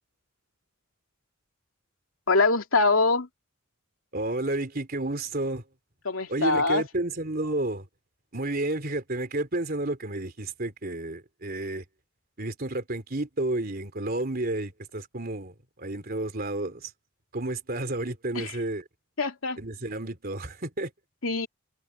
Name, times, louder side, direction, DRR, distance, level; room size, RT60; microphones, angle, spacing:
voice 1, 2.3-3.3 6.0-6.8 18.3-18.5 19.2-19.6 21.2-21.5, left 3 dB, 80° left, 2.8 m, -23 dB
voice 2, 4.1-5.6 6.3-7.8 8.3-11.8 12.4-16.9 17.3-18.8 19.6-20.9, right 2 dB, 45° right, 3.4 m, -31 dB
head